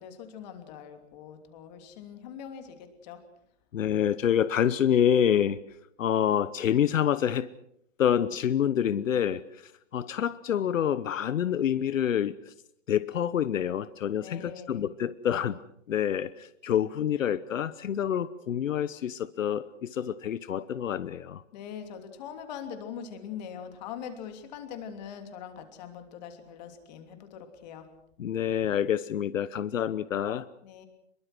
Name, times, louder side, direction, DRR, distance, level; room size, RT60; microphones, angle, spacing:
voice 1, 0.0-3.2 14.1-14.9 21.5-27.9 30.6-30.9, left 8 dB, 35° left, 7 dB, 3.0 m, -42 dB
voice 2, 3.7-5.6 6.0-7.5 8.0-12.5 12.9-15.6 15.9-21.4 28.2-30.5, left 9 dB, 85° left, 16 dB, 1.1 m, -27 dB
25.0 x 22.5 x 6.2 m, 0.74 s
hypercardioid pair, 165°, 38 cm